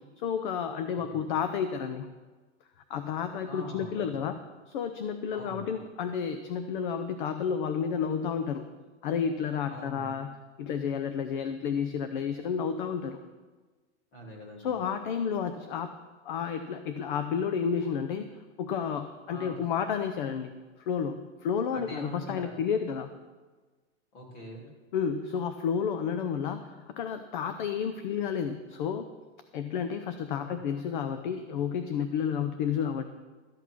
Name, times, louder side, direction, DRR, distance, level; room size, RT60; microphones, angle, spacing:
voice 1, 0.2-2.1 2.9-4.4 4.7-8.7 9.0-10.3 10.6-13.2 14.6-15.9 16.2-20.5 20.8-23.1 24.9-29.1 29.5-33.1, left 7 dB, 45° left, 9 dB, 0.7 m, -31 dB
voice 2, 0.9-1.3 3.5-4.3 5.3-5.8 9.7-10.2 14.1-14.7 19.3-19.6 21.7-22.6 24.1-24.7 30.3-30.6, right 1 dB, 25° left, 0 dB, 2.6 m, -43 dB
13.5 x 8.2 x 6.1 m, 1.3 s
supercardioid pair, 170°, 35 cm